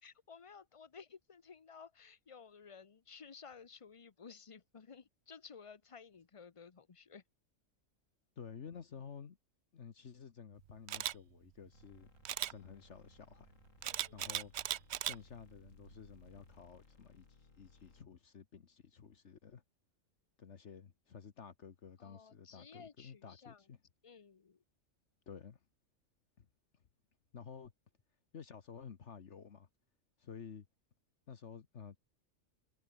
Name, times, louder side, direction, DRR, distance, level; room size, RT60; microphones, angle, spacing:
voice 1, 0.0-7.2 13.8-14.3 22.0-23.6 24.0-24.6, left 6 dB, 30° left, 0.7 m, -55 dB
voice 2, 8.4-9.4 9.7-12.1 12.5-13.5 14.1-14.5 15.0-19.6 20.4-23.8 25.3-25.6 26.4-26.5 27.3-27.7 28.3-29.7 30.2-30.7 31.3-32.0, left 6 dB, 60° left, 1.5 m, -52 dB
Camera, 10.9-11.1 12.3-12.5 13.8-15.2 15.7-15.9, right 12 dB, 65° right, 0.8 m, -37 dB
sound 1, 11.7-18.0, left 3 dB, 80° left, 3.3 m, -64 dB
omnidirectional pair, 1.3 m